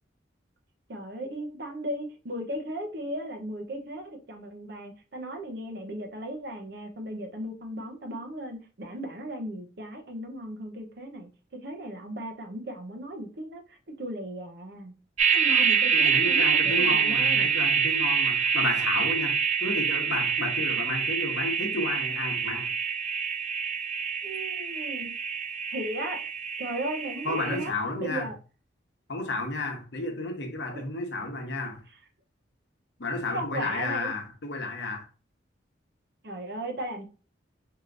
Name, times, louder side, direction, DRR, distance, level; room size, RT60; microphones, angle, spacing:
voice 1, 0.9-14.9 15.3-17.5 24.2-25.2 25.7-26.2 26.6-27.7 28.0-28.3 30.7-30.8 33.3-34.1 36.2-37.0, right 1 dB, 60° right, 0.8 m, -36 dB
sound 1, 15.2-27.7, right 6 dB, 35° right, 0.4 m, -26 dB
voice 2, 15.9-22.7 27.2-28.3 29.1-31.8 33.0-35.1, left 2 dB, 70° left, 1.0 m, -32 dB
4.7 x 2.9 x 2.5 m
head